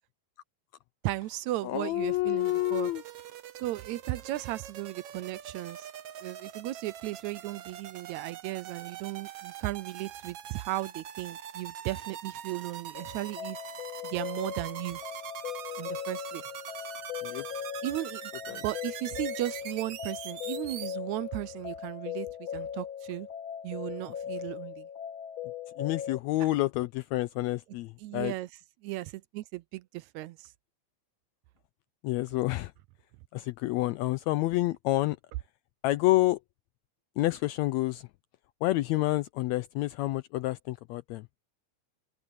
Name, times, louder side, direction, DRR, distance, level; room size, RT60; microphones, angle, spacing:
voice 1, 1.0-2.9 3.6-5.9 6.2-13.6 14.0-15.0 15.8-16.4 17.8-23.3 23.6-24.9 26.4-26.5 28.0-28.5 28.8-30.5, right 16 dB, 80° right, 1.8 m, -36 dB
voice 2, 1.6-3.0 17.2-17.4 18.5-18.6 25.8-28.3 32.0-32.7 33.3-35.2 35.8-36.4 37.2-38.1 38.6-41.3, left 18 dB, 80° left, 1.6 m, -28 dB
sound 1, 2.4-20.9, right 10 dB, 60° right, 1.8 m, -43 dB
sound 2, 12.9-26.2, left 9 dB, 55° left, 1.6 m, -39 dB
open air
omnidirectional pair, 3.5 m